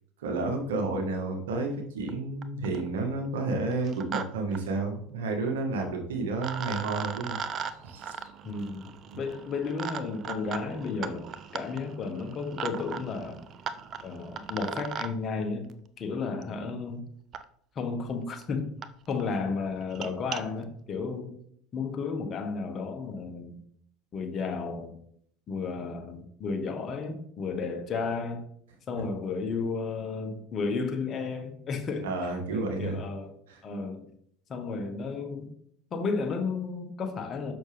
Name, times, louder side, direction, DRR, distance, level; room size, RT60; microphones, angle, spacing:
voice 1, 0.2-7.4 7.8-8.3 32.0-33.0 33.5-33.6, right 3 dB, 75° right, 2 dB, 1.6 m, -31 dB
sound 1, 2.1-2.2 2.4-2.9 3.7-4.2 4.5-4.6 5.9-6.0 6.4-15.1 16.4-16.5 17.3-17.4 18.1-18.2 18.4-18.5 18.8-18.9 19.2-19.4 19.8-20.4, right 7 dB, 45° right, 0.6 m, -38 dB
voice 2, 8.4-11.3 11.5-13.4 14.0-15.7 16.0-17.0 17.7-18.8 19.1-21.3 21.7-23.6 24.1-25.0 25.5-28.4 28.9-32.1 32.5-33.3 33.6-34.0 34.5-35.5 35.9-37.5, left 4 dB, 40° left, 4 dB, 1.4 m, -33 dB
7.0 x 6.2 x 3.5 m, 0.65 s
hypercardioid pair, 80°, 0 cm